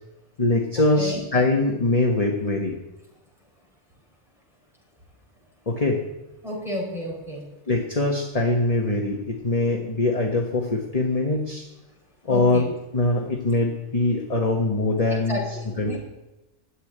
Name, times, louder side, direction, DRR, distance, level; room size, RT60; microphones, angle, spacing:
voice 1, 0.4-2.8 5.7-6.0 7.7-11.7 12.3-16.0, left 2 dB, 30° left, 1 dB, 1.3 m, -23 dB
voice 2, 6.4-7.4 12.3-12.6 15.1-16.0, equal, ahead, -3 dB, 5.3 m, -31 dB
13.0 x 8.3 x 9.9 m, 1.0 s
omnidirectional pair, 1.3 m